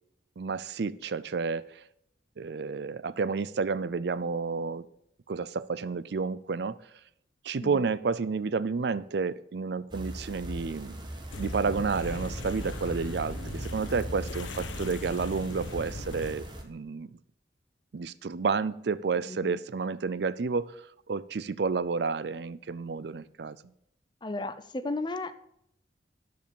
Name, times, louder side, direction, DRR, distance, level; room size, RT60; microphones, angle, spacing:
voice 1, 0.4-1.8 2.4-4.8 5.3-6.8 7.4-11.0 11.4-17.1 17.9-23.6, right 4 dB, 65° right, 17 dB, 0.4 m, -31 dB
sound 1, 9.9-16.6, right 1 dB, 25° right, 1.3 m, -39 dB
sound 2, 11.3-16.3, left 2 dB, 85° left, 1.0 m, -40 dB
voice 2, 19.3-19.6 24.2-25.4, left 2 dB, 25° left, 12 dB, 0.5 m, -34 dB
12.0 x 5.2 x 7.0 m, 0.75 s
head